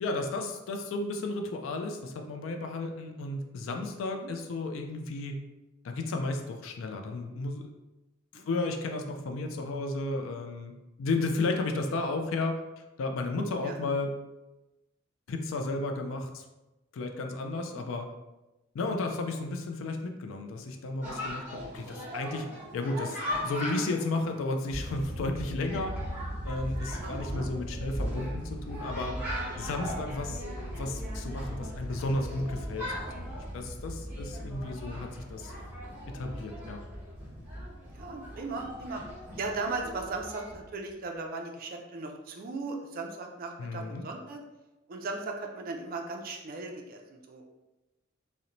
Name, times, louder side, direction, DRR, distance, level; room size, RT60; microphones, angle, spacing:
voice 1, 0.0-5.4 5.8-7.7 8.3-10.7 11.0-12.6 13.0-14.1 15.3-16.4 16.9-18.1 18.7-22.5 22.7-26.0 26.4-29.2 29.6-30.4 30.7-35.5 36.1-36.8 43.6-44.1, left 2 dB, 70° left, 4 dB, 0.3 m, -33 dB
Chatter, 21.0-40.6, equal, 10° right, 0.8 m, -41 dB
sound 1, 24.7-40.8, equal, 90° left, 0.8 m, -39 dB
voice 2, 26.9-27.5 37.9-39.0 39.4-44.4 44.9-47.4, right 3 dB, 45° right, 2 dB, 0.4 m, -37 dB
2.5 x 2.0 x 2.9 m, 1.0 s
head